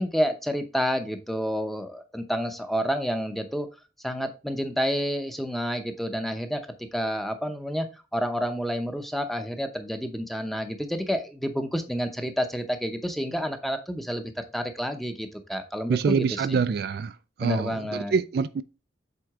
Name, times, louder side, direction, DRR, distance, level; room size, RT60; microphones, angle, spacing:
voice 1, 0.0-3.7 4.0-6.6 6.9-16.6 17.4-18.1, equal, ahead, 0.7 m, -29 dB
voice 2, 15.9-17.1 17.4-17.8 18.1-18.6, right 5 dB, 55° right, 0.3 m, -25 dB
7.8 x 3.7 x 3.6 m
head